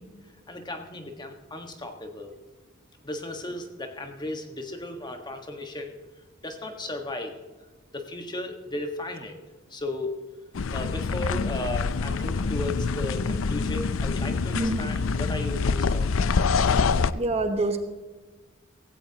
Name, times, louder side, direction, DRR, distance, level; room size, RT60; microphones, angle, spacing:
voice 1, 0.5-2.3 3.0-6.0 6.4-7.3 7.9-9.4 9.7-10.2 10.7-16.3, left 2 dB, 20° left, 4 dB, 1.5 m, -35 dB
sound 1, 10.5-17.1, left 4 dB, 75° left, 0.5 m, -25 dB
voice 2, 14.5-14.9 17.1-17.8, right 2 dB, 30° right, 6 dB, 1.2 m, -26 dB
17.0 x 16.0 x 2.9 m, 1.3 s
head